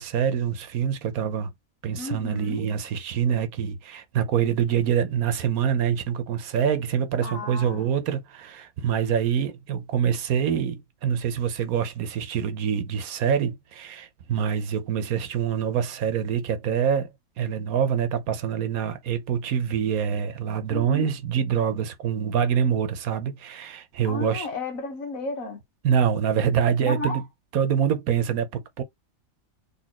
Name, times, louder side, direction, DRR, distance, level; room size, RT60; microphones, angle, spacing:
voice 1, 0.0-1.5 1.8-17.1 17.4-24.5 25.8-27.2 27.5-28.8, right 8 dB, 80° right, 1.3 m, -25 dB
voice 2, 2.0-2.7 7.2-7.9 20.7-21.1 24.1-25.6 26.8-27.2, left 3 dB, 70° left, 1.7 m, -33 dB
4.1 x 3.5 x 2.9 m
omnidirectional pair, 1.5 m